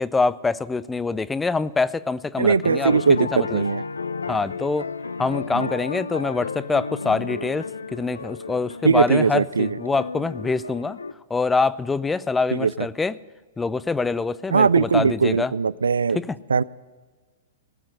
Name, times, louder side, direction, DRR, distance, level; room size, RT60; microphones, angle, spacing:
voice 1, 0.0-3.0 3.3-3.6 4.3-4.9 5.2-11.0 11.3-13.1 13.6-15.5 16.1-16.4, left 4 dB, 10° left, 18 dB, 0.4 m, -25 dB
voice 2, 2.4-3.8 5.5-5.7 8.8-9.8 12.5-12.7 14.5-16.2 16.5-16.6, right 5 dB, 75° right, 21 dB, 0.3 m, -20 dB
sound 1, 2.6-11.1, left 4 dB, 80° left, 0.6 m, -33 dB
18.5 x 7.6 x 6.5 m, 1.4 s
figure-of-eight pair, 110°, 0 cm